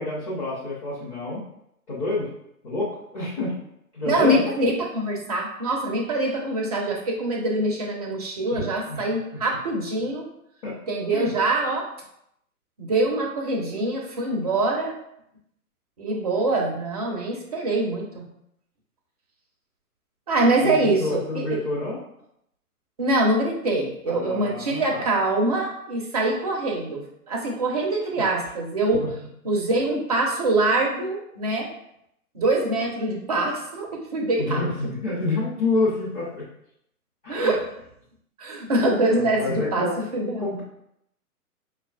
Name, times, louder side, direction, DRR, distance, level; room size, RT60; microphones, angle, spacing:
voice 1, 0.0-1.4 1.9-2.3 2.6-3.5 3.9-4.4 8.5-8.6 8.9-9.0 10.6-10.8 11.1-11.3 20.6-22.0 24.1-25.0 28.1-28.2 34.4-36.5 37.2-37.6 39.2-39.9 40.4-40.6, left 2 dB, 25° left, -9 dB, 0.8 m, -28 dB
voice 2, 4.0-10.3 10.9-11.9 12.8-15.0 16.0-18.3 20.3-21.6 23.0-29.0 29.4-31.7 32.3-34.6 37.3-37.6 38.4-40.5, right 2 dB, 25° right, 0 dB, 0.5 m, -24 dB
5.4 x 2.3 x 2.3 m, 0.76 s
figure-of-eight pair, 125°, 45 cm